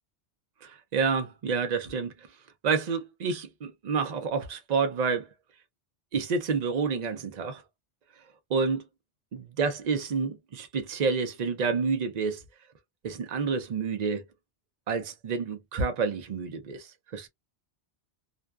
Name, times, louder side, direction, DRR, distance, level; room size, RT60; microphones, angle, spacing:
voice 1, 0.6-2.1 2.6-5.3 6.1-7.6 8.5-8.8 9.3-12.4 13.0-14.2 14.9-17.3, right 5 dB, 50° right, 0.5 m, -29 dB
2.5 x 2.2 x 2.2 m
omnidirectional pair, 1.2 m